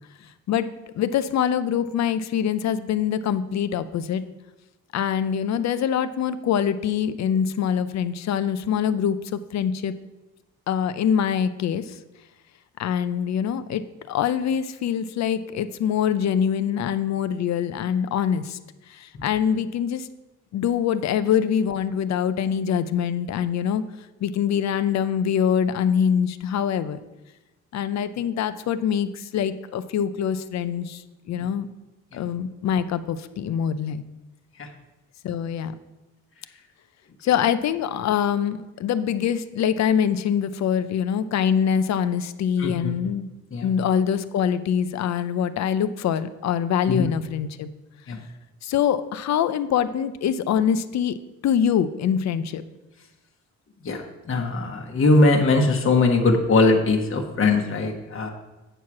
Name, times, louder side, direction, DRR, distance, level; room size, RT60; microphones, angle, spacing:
voice 1, 0.9-4.2 4.9-9.9 10.7-11.9 12.8-18.6 18.9-20.1 20.5-23.8 24.2-27.0 27.7-31.0 31.3-31.7 32.1-34.0 35.2-35.7 37.2-43.3 43.6-47.7 48.6-51.2 51.4-52.6, left 8 dB, 60° left, 12 dB, 0.6 m, -24 dB
voice 2, 42.6-42.9 43.5-43.7 46.9-47.1 48.1-48.2 53.8-58.3, left 3 dB, 45° left, 2 dB, 1.3 m, -21 dB
9.0 x 4.7 x 5.9 m, 1.1 s
cardioid pair, 90°, 30 cm